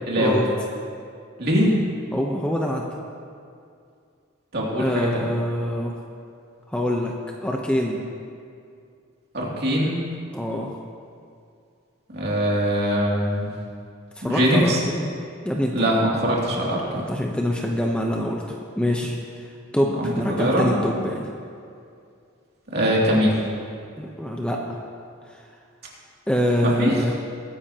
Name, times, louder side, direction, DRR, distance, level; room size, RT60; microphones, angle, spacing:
voice 1, 0.1-0.4 1.4-1.8 4.5-5.3 9.3-10.0 12.1-13.5 14.2-14.8 15.7-17.0 20.0-20.7 22.7-23.4 26.6-26.9, equal, 50° right, -4 dB, 2.6 m, -22 dB
voice 2, 2.1-2.9 4.8-5.9 6.7-7.1 7.4-8.0 10.3-10.7 14.2-15.1 15.4-15.7 16.9-19.5 19.7-21.2 24.0-24.8 26.3-27.2, equal, 5° left, 0 dB, 0.7 m, -25 dB
21.0 x 10.0 x 2.9 m, 2.3 s
head